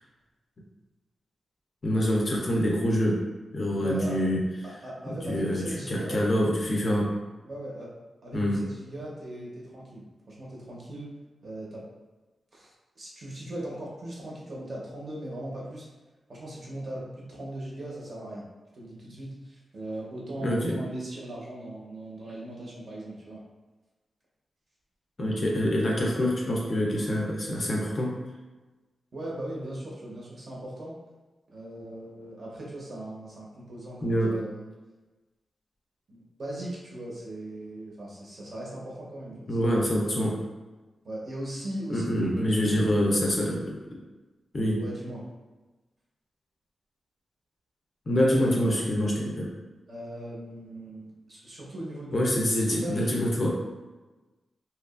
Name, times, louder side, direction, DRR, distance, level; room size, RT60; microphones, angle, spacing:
voice 1, 1.8-3.2 3.5-4.4 5.2-7.1 8.3-8.6 20.4-20.8 25.2-28.2 34.0-34.3 39.5-40.4 41.9-43.8 44.5-44.8 48.1-49.5 52.1-53.5, equal, 35° left, -2 dB, 0.4 m, -25 dB
voice 2, 3.8-4.2 4.6-6.3 7.4-7.9 8.2-11.1 11.4-11.8 12.5-15.9 16.3-18.4 18.7-23.4 29.1-31.0 31.5-34.7 36.1-39.8 41.0-42.1 42.4-42.9 44.8-45.3 48.3-48.6 49.9-53.1, right 1 dB, 40° right, -4 dB, 0.6 m, -39 dB
2.7 x 2.3 x 2.3 m, 1.2 s
wide cardioid pair, 175°, 0 cm